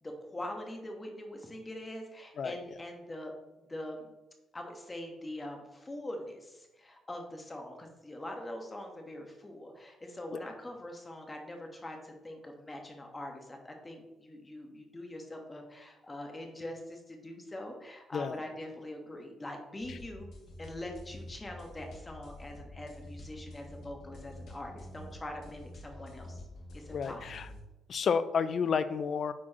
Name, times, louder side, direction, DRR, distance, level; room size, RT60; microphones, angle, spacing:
voice 1, 0.0-4.1 4.5-20.3 20.6-26.4 26.7-27.2, left 1 dB, 20° left, 2 dB, 1.4 m, -43 dB
sound 1, 19.8-27.6, left 1 dB, 70° left, 1.4 m, -48 dB
voice 2, 26.9-27.5 27.9-29.3, left 6 dB, 55° left, 13 dB, 0.4 m, -30 dB
8.5 x 4.6 x 3.0 m, 1.0 s
cardioid pair, 90°, 0 cm